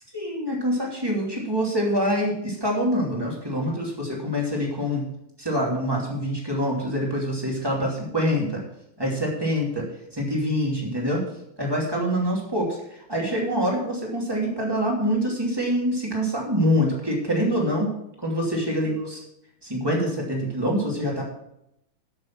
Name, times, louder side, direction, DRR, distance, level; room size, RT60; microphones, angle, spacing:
voice 1, 0.1-5.1 5.4-8.6 9.0-9.8 10.1-11.2 11.6-12.8 13.1-17.9 18.2-19.2 19.6-21.2, equal, 10° right, -2 dB, 2.4 m, -25 dB
12.0 x 6.5 x 6.0 m, 0.79 s
omnidirectional pair, 3.3 m